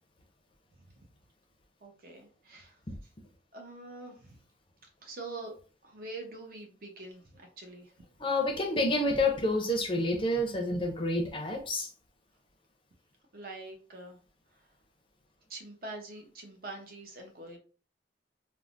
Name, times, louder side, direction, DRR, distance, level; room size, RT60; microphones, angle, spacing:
voice 1, 1.8-2.8 3.5-4.4 5.0-5.5 5.8-7.9 13.3-14.2 14.5-14.7 15.5-17.6, right 2 dB, 50° right, 2 dB, 0.7 m, -45 dB
voice 2, 8.2-11.9, left 1 dB, 30° left, 2 dB, 0.5 m, -28 dB
3.3 x 2.1 x 2.5 m, 0.38 s
head